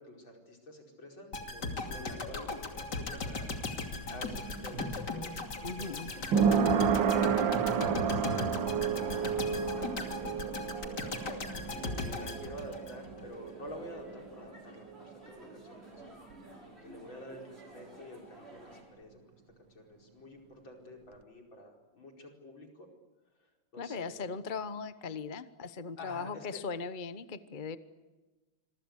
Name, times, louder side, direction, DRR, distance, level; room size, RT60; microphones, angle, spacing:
voice 1, 0.0-3.5 4.1-6.2 7.0-11.0 11.6-15.9 16.6-19.3 19.7-22.9 23.4-24.2 26.0-26.6, left 1 dB, 75° left, 2 dB, 5.7 m, -48 dB
sound 1, 1.3-13.3 13.7-13.8, left 3 dB, 60° left, 3.2 m, -38 dB
sound 2, 3.2-14.7 15.0-15.1, right 7 dB, 70° right, 1.8 m, -31 dB
voice 2, 5.6-6.1 23.8-27.8, left 5 dB, 35° left, 13 dB, 0.9 m, -39 dB
sound 3, 6.1-18.8, right 1 dB, 30° right, 6.9 m, -52 dB
26.0 x 24.0 x 8.2 m, 1.2 s
omnidirectional pair, 2.1 m